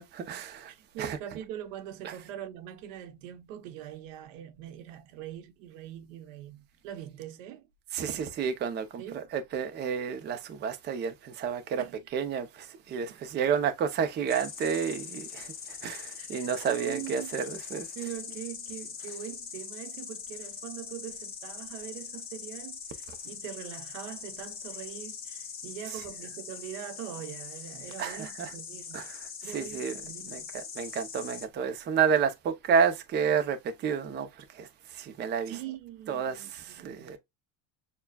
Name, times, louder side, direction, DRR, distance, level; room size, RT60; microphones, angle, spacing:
voice 1, 0.0-0.7 1.0-1.2 2.0-2.1 7.9-11.8 12.1-17.9 28.0-28.5 28.9-29.2 29.4-30.0 30.3-34.3 34.5-34.7 34.9-35.5 36.1-37.2, right 7 dB, 25° right, 0.7 m, -30 dB
voice 2, 0.7-7.7 9.0-9.3 11.8-12.0 13.1-13.2 16.2-17.4 18.0-29.1 29.4-30.5 35.5-37.2, right 11 dB, 80° right, 1.0 m, -42 dB
Insect, 14.3-31.4, left 6 dB, 25° left, 1.5 m, -42 dB
6.9 x 2.3 x 2.3 m
cardioid pair, 155°, 38 cm